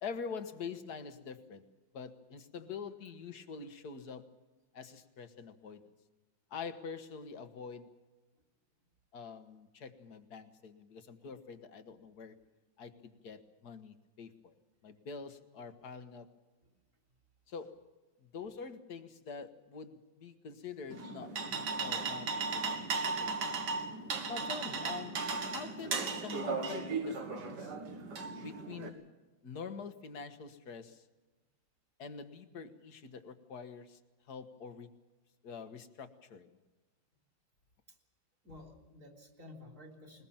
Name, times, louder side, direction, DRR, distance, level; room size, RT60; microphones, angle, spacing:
voice 1, 0.0-1.7 1.9-4.2 4.7-5.8 6.5-7.9 9.1-12.4 12.8-14.5 14.8-16.3 17.5-17.8 18.3-22.3 22.5-23.4 24.3-27.7 28.4-29.1 29.4-31.0 32.0-34.0 34.3-34.9 35.4-36.5, left 5 dB, 55° left, 9 dB, 1.8 m, -45 dB
sound 1, 20.9-28.9, right 4 dB, 60° right, 2.2 m, -36 dB
voice 2, 38.4-40.3, left 2 dB, 40° right, 2 dB, 3.9 m, -53 dB
21.0 x 20.5 x 7.2 m, 1.2 s
omnidirectional pair, 2.2 m